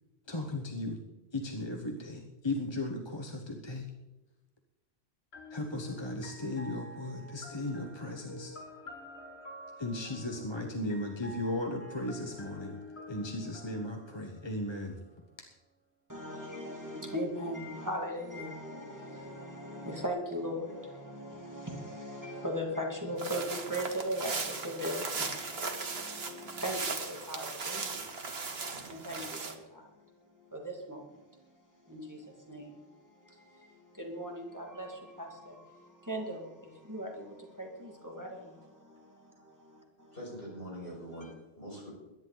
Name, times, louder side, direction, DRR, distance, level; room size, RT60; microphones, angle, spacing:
voice 1, 0.3-1.0 1.3-3.9 5.5-8.5 9.8-12.8 13.1-15.0, left 1 dB, 25° left, 1.2 m, -36 dB
sound 1, 5.3-15.1, left 2 dB, 80° left, 2.1 m, -48 dB
voice 2, 16.1-40.2, equal, 15° right, 2.2 m, -39 dB
sound 2, 23.2-29.5, right 4 dB, 75° right, 1.6 m, -37 dB
voice 3, 40.1-41.9, equal, 60° left, 6.6 m, -43 dB
22.0 x 11.0 x 4.0 m
omnidirectional pair, 1.0 m